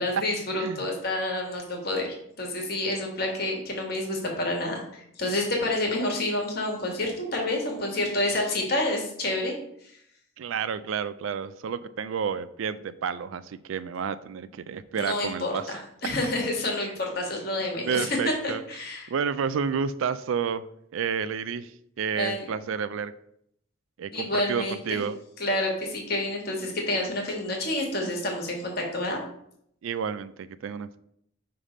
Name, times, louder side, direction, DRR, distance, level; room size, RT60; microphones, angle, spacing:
voice 1, 0.0-9.5 9.8-9.9 14.9-19.1 22.1-22.5 24.1-25.0 25.4-29.2, left 1 dB, 45° left, 1 dB, 1.5 m, -29 dB
voice 2, 0.6-0.9 10.4-15.8 16.8-16.9 17.8-18.6 19.1-23.1 24.0-25.2 29.8-31.0, right 6 dB, 75° right, 14 dB, 0.3 m, -30 dB
5.6 x 3.3 x 5.0 m, 0.70 s
head